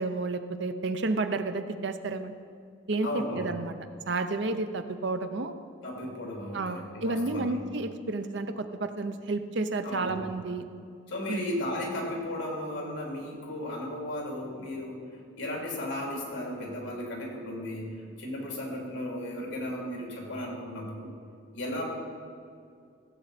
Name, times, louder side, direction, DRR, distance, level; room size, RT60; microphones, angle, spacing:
voice 1, 0.0-2.3 2.9-3.7 4.1-5.5 6.5-10.6 11.3-11.4, right 3 dB, 60° right, 9 dB, 0.6 m, -31 dB
voice 2, 3.0-3.5 5.8-7.5 9.8-10.2 11.1-15.1 15.4-21.1 21.5-21.9, left 1 dB, 75° left, -1 dB, 2.8 m, -35 dB
16.0 x 7.9 x 4.1 m, 2.3 s
head